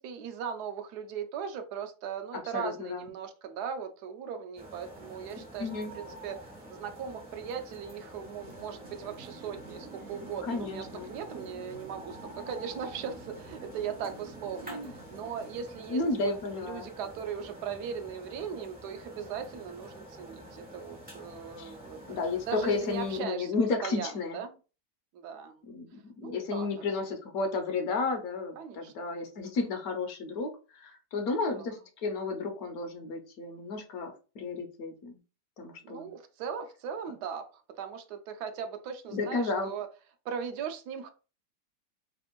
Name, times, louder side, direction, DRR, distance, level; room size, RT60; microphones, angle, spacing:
voice 1, 0.0-16.3 16.6-22.2 22.5-23.6 23.8-24.5 25.1-25.6 26.2-26.7 28.6-28.9 31.3-31.6 35.8-39.9 40.2-41.1, right 7 dB, 80° right, 1.1 m, -39 dB
voice 2, 2.5-3.1 5.6-5.9 10.2-11.1 14.7-14.9 15.9-16.9 21.6-21.7 22.1-24.4 25.7-35.2 35.6-36.1 39.1-39.7, left 3 dB, 70° left, 1.1 m, -32 dB
sound 1, 4.6-23.2, right 1 dB, 10° right, 0.5 m, -48 dB
sound 2, 8.2-15.7, right 4 dB, 60° right, 0.8 m, -50 dB
3.3 x 2.5 x 2.9 m
omnidirectional pair, 1.7 m